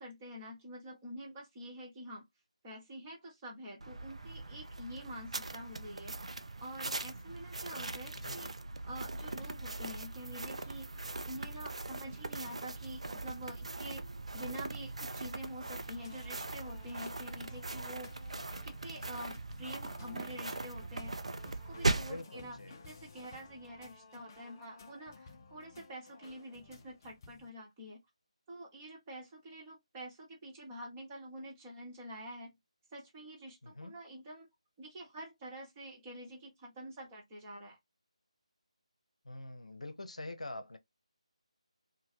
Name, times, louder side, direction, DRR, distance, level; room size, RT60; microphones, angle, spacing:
voice 1, 0.0-2.2 2.6-6.2 6.6-8.5 8.8-14.0 14.3-18.1 18.6-28.0 28.5-32.6 32.9-34.5 34.8-37.8, equal, 20° right, 1.1 m, -47 dB
sound 1, 3.8-22.2, right 2 dB, 65° right, 0.5 m, -40 dB
voice 2, 8.1-8.6 22.1-22.7 33.6-33.9 39.2-40.8, left 2 dB, 75° left, 0.7 m, -45 dB
sound 2, 15.6-27.5, left 4 dB, 30° left, 0.5 m, -56 dB
2.8 x 2.2 x 3.2 m
figure-of-eight pair, 155°, 4 cm